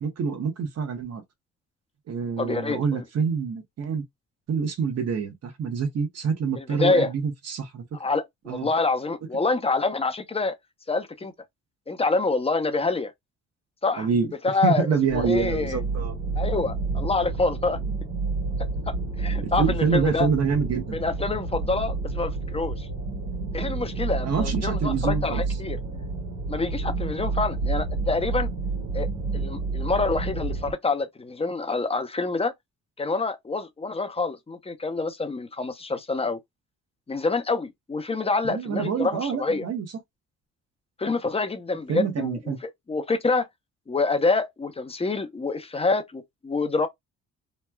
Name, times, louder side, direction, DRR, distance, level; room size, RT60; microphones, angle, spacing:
voice 1, 0.0-1.2 2.1-4.0 4.5-7.8 8.5-8.7 14.0-16.2 19.6-21.0 24.2-25.4 38.5-39.9 41.9-42.6, right 6 dB, 55° right, 1.0 m, -26 dB
voice 2, 2.4-3.0 6.5-7.1 7.9-10.6 10.9-11.3 11.9-13.1 13.8-14.1 14.4-14.9 15.1-15.8 16.4-17.8 18.9-20.3 20.9-22.9 23.5-25.8 26.5-28.5 28.9-29.1 29.3-32.5 33.0-36.4 37.1-39.7 41.0-43.5 43.9-46.9, left 3 dB, 20° left, 0.6 m, -26 dB
sound 1, 15.1-30.7, right 3 dB, 70° right, 1.5 m, -29 dB
3.0 x 2.2 x 2.2 m
cardioid pair, 90°, 30 cm